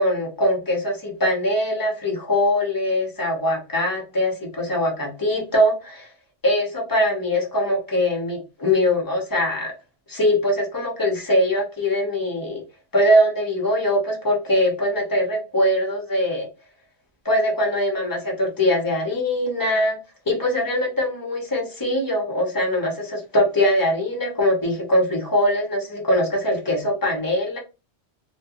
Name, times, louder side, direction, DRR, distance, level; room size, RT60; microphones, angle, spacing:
voice 1, 0.0-6.1 6.4-9.7 10.1-12.6 12.9-16.5 17.2-20.0 20.3-27.6, left 1 dB, 25° left, 0 dB, 0.6 m, -22 dB
2.3 x 2.2 x 2.8 m, 0.29 s
omnidirectional pair, 1.2 m